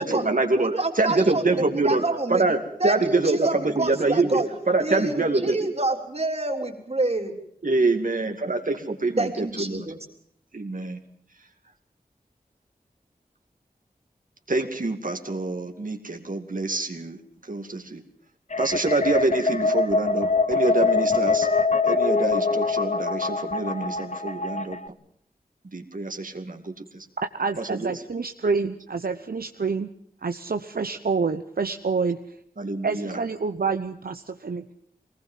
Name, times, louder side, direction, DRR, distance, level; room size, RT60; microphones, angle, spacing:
voice 1, 0.0-0.7 1.0-2.0 2.3-2.6 2.8-3.5 3.8-4.4 4.7-5.7 7.6-9.8 10.5-11.0 14.5-17.2 17.5-18.0 18.6-21.5 21.8-24.8 25.7-26.6 27.8-27.9 32.6-33.2, right 2 dB, 60° right, 5 dB, 2.5 m, -25 dB
voice 2, 0.6-2.4 2.8-4.5 4.8-7.3 9.2-10.0, right 2 dB, 40° right, 4 dB, 3.8 m, -28 dB
sound 1, 18.5-24.9, left 4 dB, 50° left, 0.9 m, -24 dB
voice 3, 27.3-29.9 30.2-32.2 32.8-34.7, right 4 dB, 75° right, 8 dB, 1.0 m, -27 dB
22.5 x 20.0 x 7.5 m, 0.64 s
wide cardioid pair, 65°, 15 cm